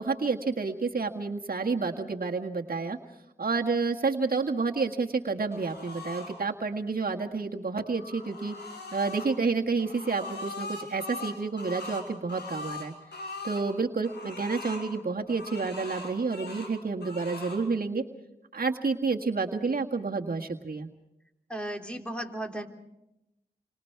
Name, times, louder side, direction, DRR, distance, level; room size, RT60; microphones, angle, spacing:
voice 1, 0.0-3.0 3.4-8.6 8.9-12.9 13.4-18.0 18.5-20.9, right 4 dB, 60° right, 2 dB, 1.8 m, -29 dB
sound 1, 5.5-6.3 7.7-9.3 9.8-13.7 14.0-14.9 15.3-16.7 17.0-17.6, left 3 dB, 90° left, 5.8 m, -40 dB
voice 2, 21.5-22.7, right 1 dB, 5° left, 3 dB, 3.5 m, -35 dB
29.0 x 25.5 x 4.7 m, 0.88 s
cardioid pair, 45°, 17 cm